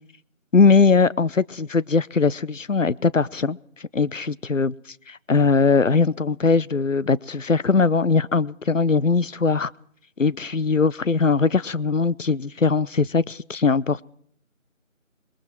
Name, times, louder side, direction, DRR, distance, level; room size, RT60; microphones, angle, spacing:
voice 1, 0.5-3.6 3.9-4.7 5.1-9.7 10.2-14.0, left 4 dB, 65° left, 0.8 m, -20 dB
27.0 x 22.0 x 4.4 m
figure-of-eight pair, 180°, 41 cm